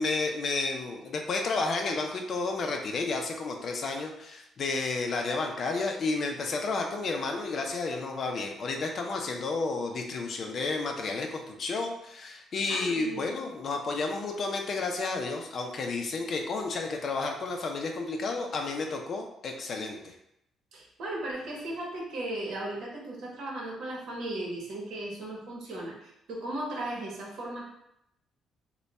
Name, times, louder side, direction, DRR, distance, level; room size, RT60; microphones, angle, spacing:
voice 1, 0.0-20.0, left 3 dB, 40° left, 2 dB, 0.5 m, -31 dB
voice 2, 12.7-13.3 20.7-27.6, right 1 dB, 65° right, -2 dB, 1.1 m, -36 dB
3.3 x 2.2 x 4.0 m, 0.80 s
cardioid pair, 160°, 0 cm